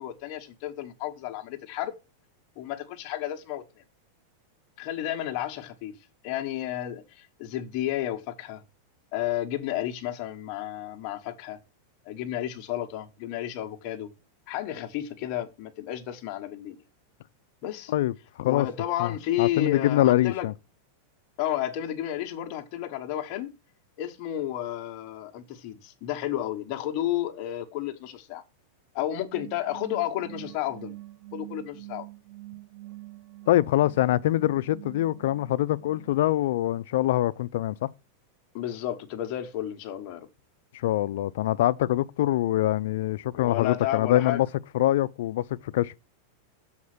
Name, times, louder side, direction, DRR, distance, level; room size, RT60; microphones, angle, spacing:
voice 1, 0.0-1.9 2.6-3.6 4.8-5.9 6.2-8.6 9.1-11.6 12.0-14.1 14.5-16.8 17.6-17.9 18.4-20.5 21.4-23.5 24.0-28.4 28.9-30.9 31.3-32.1 38.5-40.3 43.3-44.4, left 12 dB, 45° left, 1.2 m, -32 dB
voice 2, 17.9-18.7 19.0-20.5 33.5-37.9 40.7-44.5 44.7-46.0, left 14 dB, 70° left, 0.4 m, -24 dB
sound 1, 29.3-36.1, right 19 dB, 60° right, 1.2 m, -45 dB
7.1 x 4.3 x 6.5 m
supercardioid pair, 150°, 0 cm